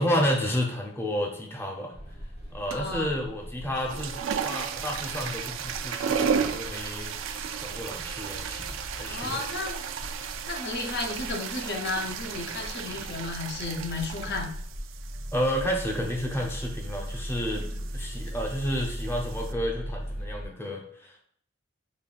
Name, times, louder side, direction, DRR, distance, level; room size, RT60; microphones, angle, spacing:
voice 1, 0.0-1.9 2.5-4.2 4.4-7.1 7.6-9.4 15.3-17.7 17.9-21.2, equal, 10° left, 0 dB, 0.6 m, -31 dB
sound 1, 1.9-20.5, equal, 35° left, 1.1 m, -39 dB
voice 2, 2.7-3.1 9.0-9.8 10.5-14.5 17.6-17.8, left 3 dB, 55° left, 2 dB, 0.7 m, -33 dB
sound 2, 2.7-3.0 3.7-19.5, right 7 dB, 75° right, 0.3 m, -35 dB
5.3 x 2.3 x 2.4 m, 0.63 s
head